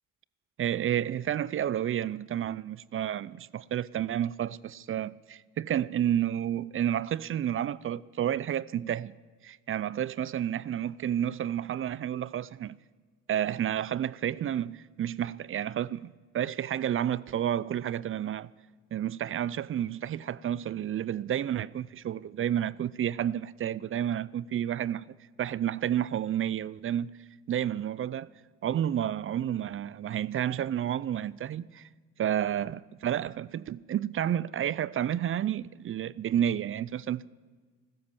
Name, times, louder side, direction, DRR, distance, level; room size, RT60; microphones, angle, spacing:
voice 1, 0.6-9.1 9.4-12.8 13.3-18.5 18.9-27.1 27.5-28.3 28.6-31.9 32.2-37.3, right 10 dB, 45° right, 0.5 m, -30 dB
15.5 x 13.0 x 7.1 m
cardioid pair, 90°, 30 cm